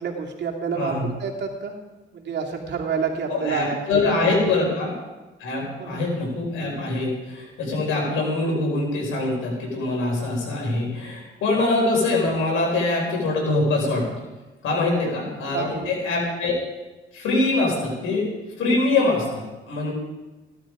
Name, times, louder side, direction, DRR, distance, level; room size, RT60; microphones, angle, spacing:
voice 1, 0.0-1.7 2.1-4.3 5.8-6.0 14.9-15.2 15.5-15.9, right 5 dB, 60° right, 0 dB, 2.7 m, -29 dB
voice 2, 0.7-1.1 3.3-4.9 5.4-14.1 14.6-16.5 17.1-18.3 18.6-19.9, left 2 dB, 85° left, -1 dB, 5.6 m, -24 dB
16.5 x 11.5 x 5.0 m, 1.2 s
cardioid pair, 90°, 20 cm